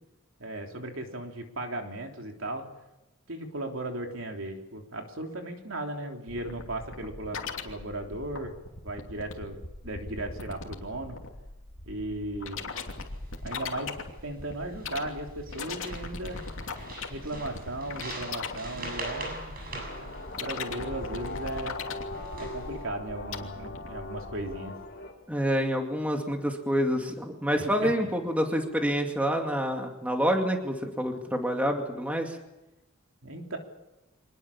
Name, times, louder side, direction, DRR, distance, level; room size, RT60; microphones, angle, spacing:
voice 1, 0.4-2.7 3.3-8.5 8.8-9.6 9.8-11.2 11.9-12.6 13.4-14.0 14.2-16.4 17.1-19.6 20.0-21.8 22.4-24.7 27.6-27.9 33.2-33.6, right 1 dB, 65° right, 2 dB, 3.4 m, -36 dB
sound 1, 6.3-24.6, left 4 dB, 65° left, 3.0 m, -39 dB
sound 2, 12.7-13.1 13.5-14.1 14.7-15.2 15.5-21.6 22.1-22.8, right 1 dB, 45° right, 7.4 m, -42 dB
sound 3, 19.8-25.1, left 2 dB, 45° left, 6.7 m, -40 dB
voice 2, 25.3-32.4, equal, 5° right, 2 dB, 2.4 m, -27 dB
25.0 x 20.5 x 7.3 m, 0.96 s
head